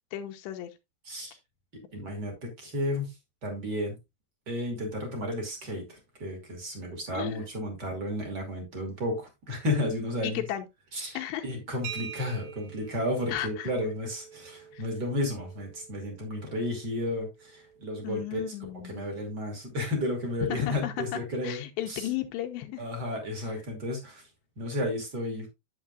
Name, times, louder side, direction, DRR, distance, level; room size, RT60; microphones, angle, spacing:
voice 1, 0.1-0.7 7.1-7.4 10.2-10.7 11.1-11.4 13.3-13.7 14.7-14.8 18.0-19.0 20.5-22.8, left 12 dB, 90° left, 3.0 m, -34 dB
voice 2, 1.0-1.4 1.9-3.1 3.4-3.9 4.5-10.4 10.9-18.4 18.7-22.1 22.8-24.2 24.6-25.5, left 1 dB, 30° right, 2.5 m, -32 dB
sound 1, 11.8-19.4, right 8 dB, 80° right, 3.5 m, -47 dB
8.9 x 8.2 x 2.4 m
omnidirectional pair, 5.0 m